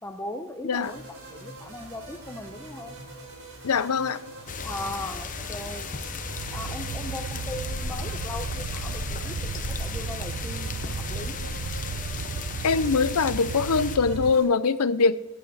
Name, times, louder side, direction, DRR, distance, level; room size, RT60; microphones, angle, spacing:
voice 1, 0.0-3.0 4.6-5.9 6.5-11.5, left 1 dB, 10° left, 2 dB, 0.7 m, -38 dB
sound 1, 0.7-14.4, right 1 dB, 60° right, 4.7 m, -44 dB
voice 2, 3.6-4.2 12.6-15.2, left 4 dB, 85° left, 15 dB, 0.7 m, -23 dB
sound 2, 4.5-14.0, left 4 dB, 35° left, 0.9 m, -35 dB
sound 3, 6.2-14.3, right 6 dB, 85° right, 0.4 m, -35 dB
17.5 x 8.6 x 4.8 m, 1.1 s
head